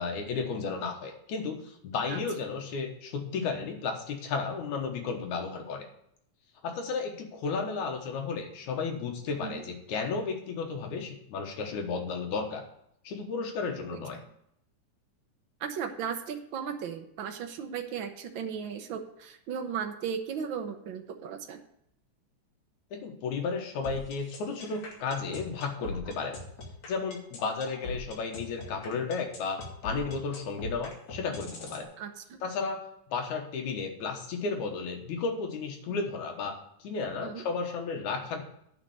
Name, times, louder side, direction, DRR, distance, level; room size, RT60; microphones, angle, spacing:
voice 1, 0.0-5.9 6.6-12.7 13.0-14.2 22.9-26.4 26.9-31.9 32.4-38.4, left 4 dB, 85° left, 3 dB, 2.7 m, -33 dB
voice 2, 15.6-21.6 32.0-32.4 37.2-37.4, right 7 dB, 75° right, 5 dB, 1.1 m, -36 dB
sound 1, 23.8-31.8, left 3 dB, 65° left, 3.4 m, -40 dB
9.7 x 5.4 x 7.9 m, 0.74 s
omnidirectional pair, 3.4 m